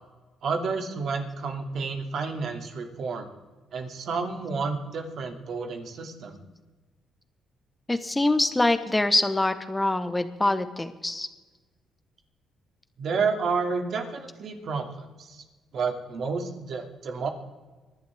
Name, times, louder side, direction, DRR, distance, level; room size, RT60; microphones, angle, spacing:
voice 1, 0.4-3.3 3.7-6.4 13.0-15.4 15.7-17.3, right 4 dB, 65° right, 4 dB, 2.5 m, -30 dB
voice 2, 7.9-11.3, left 2 dB, 15° left, 10 dB, 1.3 m, -24 dB
25.0 x 11.0 x 3.6 m, 1.3 s
cardioid pair, 90°, 0 cm